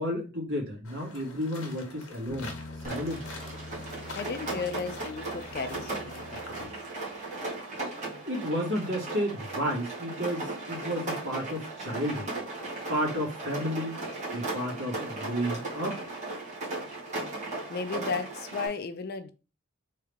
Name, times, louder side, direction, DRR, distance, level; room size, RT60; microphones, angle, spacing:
voice 1, 0.0-2.5 2.8-3.2 8.3-12.3 12.9-14.0 14.3-16.0, equal, 60° right, 2.1 m, -32 dB
sound 1, 0.8-6.7, left 3 dB, 65° left, 1.1 m, -46 dB
sound 2, 2.3-7.2, left 2 dB, 90° left, 0.8 m, -45 dB
Rain, 2.8-18.7, right 2 dB, 35° right, 1.6 m, -37 dB
voice 2, 4.1-6.8 17.3-17.4 17.7-19.3, left 5 dB, 50° left, 0.4 m, -35 dB
3.7 x 3.3 x 3.4 m
head